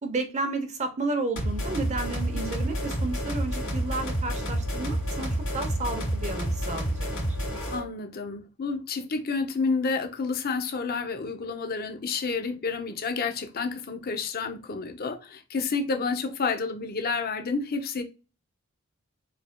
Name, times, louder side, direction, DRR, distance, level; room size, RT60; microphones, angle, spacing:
voice 1, 0.0-7.1, right 3 dB, 30° right, 0.7 m, -32 dB
sound 1, 1.4-7.9, equal, 65° left, 2.0 m, -29 dB
voice 2, 7.7-18.0, left 4 dB, 45° left, 0.6 m, -30 dB
4.8 x 3.4 x 2.2 m
head